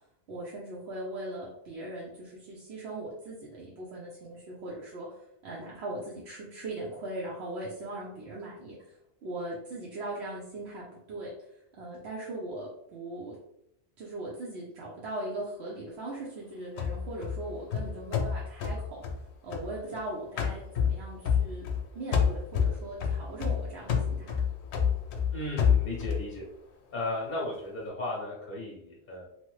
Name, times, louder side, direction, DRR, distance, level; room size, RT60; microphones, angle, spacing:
voice 1, 0.3-5.2 5.4-9.0 9.2-11.3 11.8-13.4 14.0-19.0 19.4-21.7 21.9-24.3, right 1 dB, 75° right, -4 dB, 0.9 m, -39 dB
sound 1, 16.8-20.0 20.4-21.8 22.1-26.3, left 7 dB, 80° left, 0.8 m, -28 dB
voice 2, 25.3-26.5 26.9-29.3, left 1 dB, 50° left, -3 dB, 0.8 m, -35 dB
3.0 x 2.0 x 3.0 m, 0.77 s
omnidirectional pair, 1.1 m